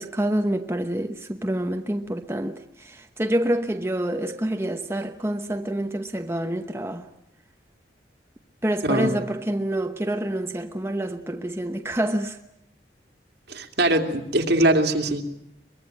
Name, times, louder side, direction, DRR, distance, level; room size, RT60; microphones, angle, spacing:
voice 1, 0.0-7.1 8.6-12.4, right 1 dB, 15° right, 0.9 m, -27 dB
voice 2, 8.8-9.2 13.5-15.2, right 1 dB, 75° right, 2.6 m, -21 dB
23.0 x 22.0 x 9.0 m
head